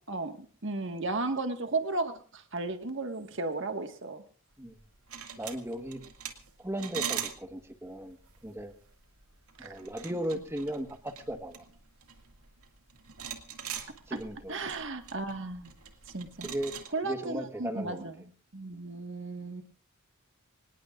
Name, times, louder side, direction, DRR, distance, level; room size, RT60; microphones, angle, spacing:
voice 1, 0.1-4.2 9.6-9.8 14.5-15.7 16.1-16.5 16.9-18.1 18.5-19.6, right 3 dB, 55° right, 6 dB, 1.7 m, -34 dB
sound 1, 4.7-16.9, right 8 dB, 80° right, 2.2 m, -42 dB
voice 2, 5.4-6.0 6.6-8.7 9.6-11.6 14.1-14.6 16.4-16.8 17.0-18.0, right 1 dB, 10° right, 7 dB, 1.4 m, -36 dB
25.5 x 19.5 x 2.5 m, 0.39 s
head